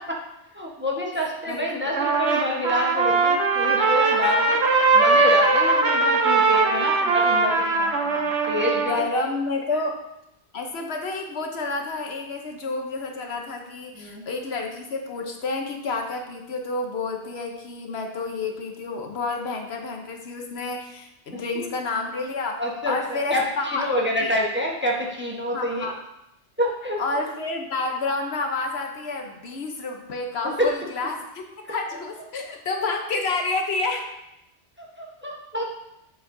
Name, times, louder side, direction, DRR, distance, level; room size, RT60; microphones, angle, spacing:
voice 1, 0.5-4.6 4.9-7.9 8.5-8.9 13.9-14.2 21.3-21.7 22.6-25.9 26.6-27.0 30.6-30.7 35.0-35.8, left 1 dB, 10° right, -3 dB, 1.0 m, -27 dB
voice 2, 1.5-1.9 6.7-6.8 7.3-8.4 8.7-10.0 10.5-23.9 24.2-24.3 25.5-26.0 27.0-31.4 31.7-34.1, left 3 dB, 65° left, 3 dB, 1.1 m, -30 dB
Trumpet, 1.9-9.1, right 3 dB, 75° right, 1.1 m, -20 dB
7.5 x 7.5 x 2.6 m, 0.87 s
omnidirectional pair, 1.2 m